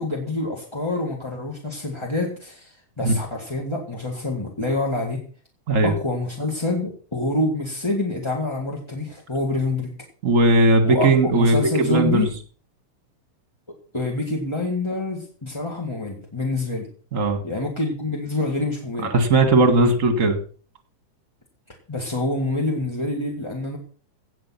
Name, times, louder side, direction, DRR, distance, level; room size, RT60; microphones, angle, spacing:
voice 1, 0.0-5.2 5.8-9.9 10.8-12.3 13.9-16.9 17.4-19.1 21.9-23.8, left 2 dB, 10° left, 0 dB, 1.4 m, -26 dB
voice 2, 10.2-12.3 17.1-17.4 19.0-20.4, right 2 dB, 30° right, 8 dB, 2.0 m, -18 dB
17.0 x 7.5 x 5.9 m, 0.41 s
omnidirectional pair, 3.4 m